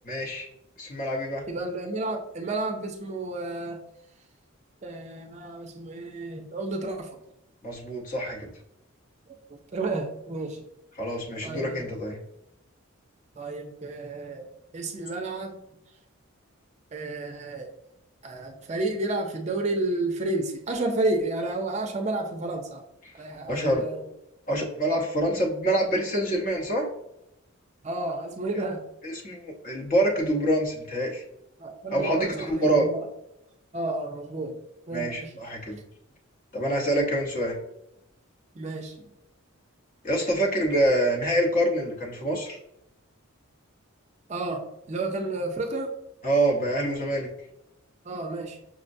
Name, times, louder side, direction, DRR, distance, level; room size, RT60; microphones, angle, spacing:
voice 1, 0.0-0.5 0.8-1.4 7.6-8.5 11.0-12.2 23.5-23.8 24.5-26.9 29.0-31.2 31.9-32.9 34.9-35.8 36.5-37.6 40.0-42.6 46.2-47.3, right 1 dB, 40° left, -1 dB, 0.8 m, -26 dB
voice 2, 1.5-3.8 4.8-7.1 9.3-10.6 11.4-11.8 13.4-14.5 14.7-15.6 16.9-17.7 18.2-22.8 23.1-24.0 27.8-28.8 31.6-33.0 33.7-34.5 34.9-35.3 38.5-39.1 44.3-44.6 44.9-45.9 48.0-48.6, right 2 dB, 30° right, 3 dB, 0.4 m, -31 dB
6.1 x 2.1 x 2.6 m, 0.84 s
head